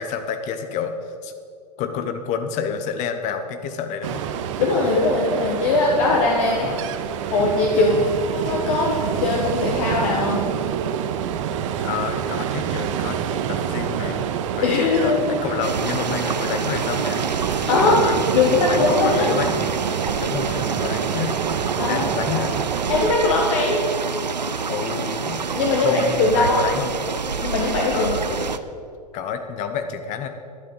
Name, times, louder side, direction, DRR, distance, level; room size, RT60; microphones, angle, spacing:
voice 1, 0.0-1.3 1.8-4.2 6.5-6.8 7.8-8.1 11.8-13.2 13.5-14.3 14.6-17.2 17.8-18.2 18.4-19.6 20.2-21.4 21.9-22.6 24.7-27.0 27.9-28.6 29.1-30.3, left 7 dB, 35° left, 8 dB, 1.1 m, -29 dB
Ocean, 4.0-23.1, right 8 dB, 45° right, 0.8 m, -27 dB
voice 2, 4.6-6.7 7.3-10.4 14.6-15.2 17.7-18.0 18.3-19.3 21.8-22.4 22.9-23.8 25.5-26.6 27.4-28.1, left 3 dB, 50° left, -2 dB, 1.7 m, -20 dB
sound 1, 15.6-28.6, right 5 dB, 85° right, 0.6 m, -27 dB
12.0 x 10.5 x 5.6 m, 2.4 s
figure-of-eight pair, 100°, 21 cm